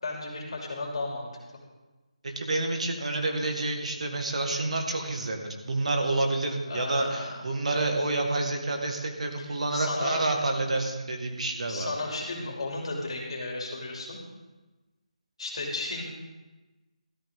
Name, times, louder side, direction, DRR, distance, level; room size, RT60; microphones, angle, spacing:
voice 1, 0.0-1.3 6.7-7.3 9.4-10.3 11.7-14.2 15.4-16.0, left 2 dB, 50° left, -1 dB, 3.0 m, -34 dB
voice 2, 2.2-11.9, right 2 dB, 60° right, 3 dB, 1.8 m, -29 dB
13.0 x 12.0 x 3.8 m, 1.1 s
figure-of-eight pair, 170°, 4 cm